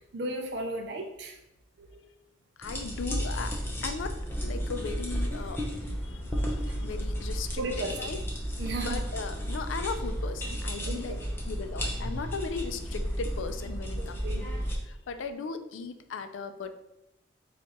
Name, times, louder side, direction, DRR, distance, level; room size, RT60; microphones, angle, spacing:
voice 1, 0.0-1.4 1.8-2.1 6.6-6.8 7.6-8.0 8.6-9.0 10.8-11.2 14.2-14.5, right 2 dB, 55° right, 3 dB, 0.4 m, -35 dB
voice 2, 2.6-3.6 3.8-4.2 4.4-5.6 6.0-7.6 8.0-8.2 8.8-11.2 11.4-14.2 14.8-16.7, left 4 dB, 80° left, 8 dB, 0.4 m, -37 dB
sound 1, 2.6-14.8, equal, 10° left, 0.6 m, -33 dB
4.4 x 2.4 x 4.1 m, 0.89 s
head